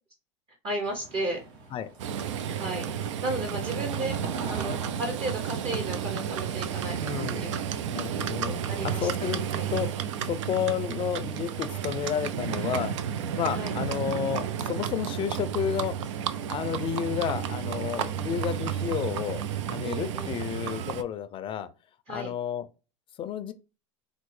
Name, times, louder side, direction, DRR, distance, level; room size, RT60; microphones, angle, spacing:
voice 1, 0.6-1.4 2.6-2.9 3.2-4.2 4.5-7.6 8.4-9.1 9.5-9.7 12.6-12.8 13.5-13.7 19.8-20.4 22.1-22.3, right 2 dB, 40° right, 0.8 m, -34 dB
sound 1, 0.8-13.2, right 4 dB, 70° right, 1.2 m, -46 dB
Livestock farm animals working animals, 2.0-21.0, right 9 dB, 90° right, 0.4 m, -32 dB
voice 2, 7.0-7.4 7.9-9.4 9.7-9.9 10.3-12.9 13.3-15.9 16.5-21.7 22.1-22.7 23.2-23.5, left 9 dB, 35° left, 0.4 m, -31 dB
4.2 x 2.0 x 3.2 m
supercardioid pair, 105°, 15 cm